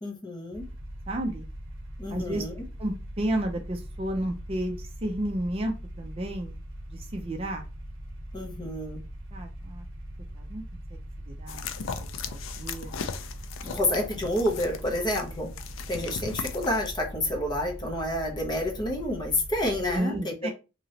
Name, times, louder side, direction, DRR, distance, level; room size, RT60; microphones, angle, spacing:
voice 1, 0.0-0.7 2.0-2.5 8.3-9.0 13.6-15.5 15.9-20.5, left 1 dB, 20° left, 0 dB, 0.8 m, -29 dB
sound 1, 0.5-20.0, right 1 dB, 70° right, 0.7 m, -41 dB
voice 2, 1.1-1.5 2.1-2.5 2.8-6.6 6.9-7.7 9.3-9.9 10.3-10.6 10.9-11.7 12.0-13.0 15.9-16.1 19.9-20.5, right 1 dB, 30° right, 3 dB, 0.4 m, -32 dB
sound 2, 11.5-16.9, left 6 dB, 75° left, 0.4 m, -38 dB
3.0 x 2.8 x 2.7 m, 0.29 s
head